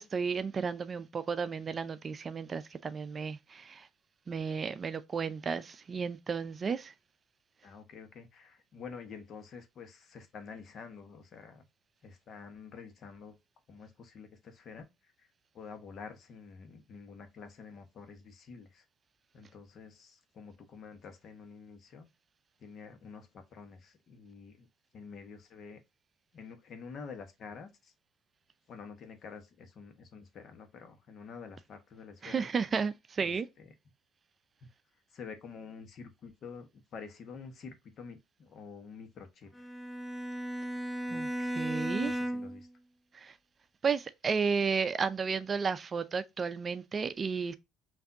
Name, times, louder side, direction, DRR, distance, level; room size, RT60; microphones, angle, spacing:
voice 1, 0.0-3.9 4.3-6.9 32.2-33.5 41.1-42.2 43.1-43.4 43.8-47.5, right 5 dB, 40° right, 0.4 m, -33 dB
voice 2, 7.6-11.7 12.0-13.4 13.7-15.3 15.5-18.8 19.3-22.1 22.6-24.7 24.9-25.8 26.3-27.9 28.7-32.5 33.2-33.7 35.1-39.7 41.1-41.2 42.0-42.7, left 5 dB, 55° left, 1.1 m, -48 dB
Bowed string instrument, 39.5-42.7, right 1 dB, 10° left, 0.6 m, -35 dB
5.7 x 2.6 x 2.6 m
supercardioid pair, 75°, 0 cm